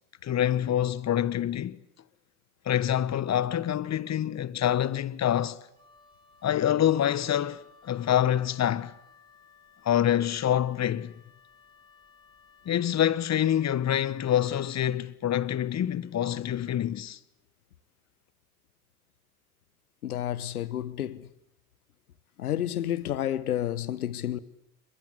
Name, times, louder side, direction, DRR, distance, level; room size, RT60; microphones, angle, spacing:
voice 1, 0.2-1.8 2.6-5.6 6.4-8.9 9.8-11.1 12.6-17.2, left 11 dB, 40° left, 1.4 m, -26 dB
Wind instrument woodwind instrument, 5.7-14.8, left 5 dB, 10° left, 6.7 m, -58 dB
voice 2, 20.0-21.3 22.4-24.4, left 11 dB, 80° left, 1.2 m, -30 dB
28.5 x 22.5 x 8.3 m
figure-of-eight pair, 55°, 43 cm